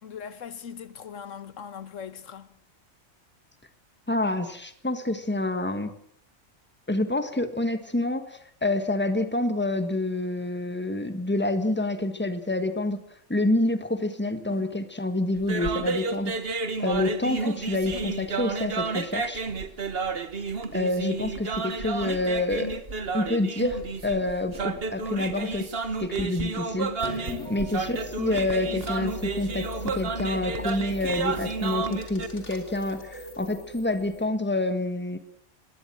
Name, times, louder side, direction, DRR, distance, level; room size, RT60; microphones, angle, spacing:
voice 1, 0.0-2.6 14.5-14.7 27.2-27.5, left 7 dB, 85° left, 1.5 m, -40 dB
voice 2, 4.1-5.9 6.9-13.0 13.3-16.4 16.8-19.4 20.7-22.8 23.1-25.7 26.0-35.2, left 2 dB, 10° left, 1.6 m, -27 dB
sound 1, 15.4-32.3, right 4 dB, 50° right, 1.5 m, -31 dB
sound 2, 27.0-34.3, left 2 dB, 70° left, 3.4 m, -40 dB
20.5 x 16.5 x 7.7 m
omnidirectional pair, 1.3 m